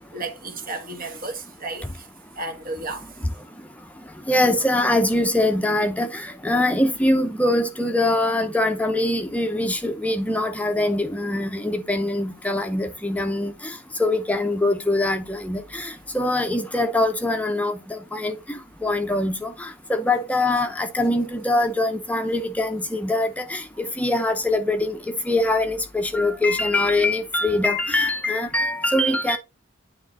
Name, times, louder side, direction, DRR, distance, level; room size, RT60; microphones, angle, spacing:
voice 1, 0.1-1.8 2.4-3.0, right 2 dB, 50° right, 1.4 m, -32 dB
voice 2, 4.3-25.0 25.2-29.4, left 1 dB, 5° left, 0.7 m, -23 dB
9.6 x 3.6 x 4.1 m
head